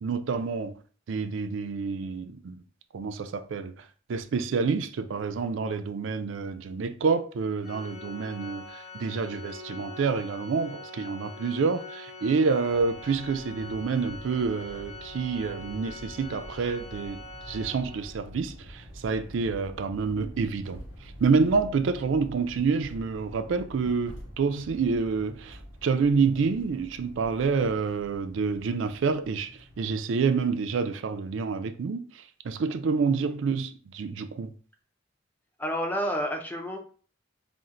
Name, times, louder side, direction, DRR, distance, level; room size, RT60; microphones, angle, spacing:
voice 1, 0.0-0.8 1.1-2.6 2.9-17.2 17.5-20.8 21.2-29.5 29.8-34.5, right 5 dB, 85° right, 0.4 m, -28 dB
Organ, 7.6-18.3, left 2 dB, 45° left, 1.3 m, -44 dB
sound 1, 12.6-29.9, equal, 70° left, 1.6 m, -47 dB
voice 2, 35.6-36.8, equal, 10° left, 0.5 m, -30 dB
4.2 x 2.1 x 3.7 m
head